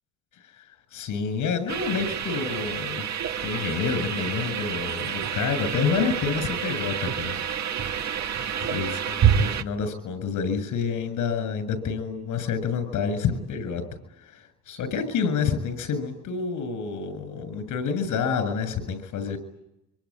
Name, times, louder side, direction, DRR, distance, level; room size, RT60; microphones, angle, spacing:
voice 1, 0.9-3.1 3.4-7.3 8.7-13.8 14.2-19.4, left 6 dB, 85° left, 13 dB, 7.5 m, -28 dB
sound 1, 1.7-9.6, right 8 dB, 65° right, 1.7 m, -28 dB
26.0 x 25.0 x 8.9 m, 0.83 s
cardioid pair, 90°, 30 cm